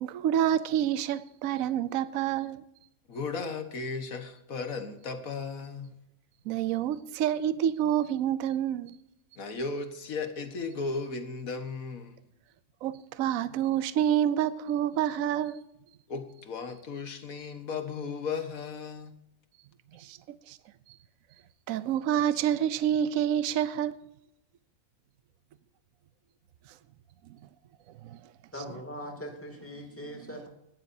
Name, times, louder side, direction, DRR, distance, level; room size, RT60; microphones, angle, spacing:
voice 1, 0.0-2.6 6.5-8.9 12.8-15.6 19.9-20.2 20.5-20.6 21.7-23.9 28.0-28.2, right 10 dB, 75° right, 1.0 m, -28 dB
voice 2, 3.1-6.0 9.4-12.2 16.1-19.1, left 4 dB, 80° left, 1.9 m, -35 dB
voice 3, 28.5-30.5, equal, 10° left, 2.5 m, -41 dB
20.0 x 12.0 x 2.7 m
omnidirectional pair, 1.5 m